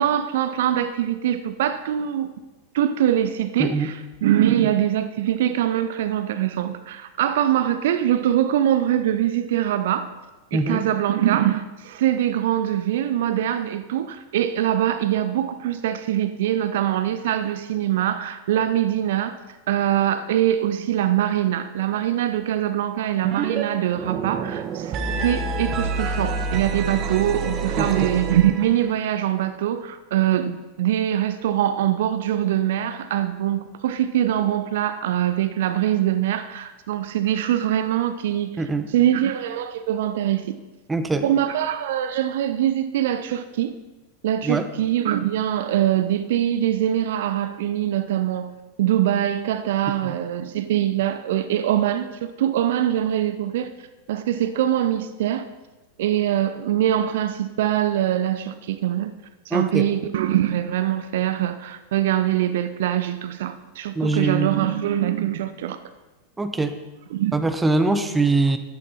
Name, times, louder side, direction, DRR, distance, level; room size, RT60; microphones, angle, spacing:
voice 1, 0.0-2.3 2.7-10.1 10.5-19.4 19.7-40.5 41.2-43.7 44.2-48.5 48.8-53.7 54.1-55.4 56.0-59.1 59.5-65.8 67.1-67.3, right 11 dB, 55° right, 11 dB, 0.6 m, -23 dB
voice 2, 3.6-4.0 10.5-10.8 27.8-27.9 38.6-38.9 40.9-41.3 44.4-44.7 50.0-50.1 59.5-59.8 63.9-64.7 66.4-66.8 67.3-68.6, right 3 dB, 10° right, 8 dB, 0.9 m, -22 dB
sound 1, 23.2-23.6 23.9-28.9, right 4 dB, 30° right, 1.3 m, -27 dB
13.5 x 11.5 x 4.2 m, 1.1 s
figure-of-eight pair, 90°, 0 cm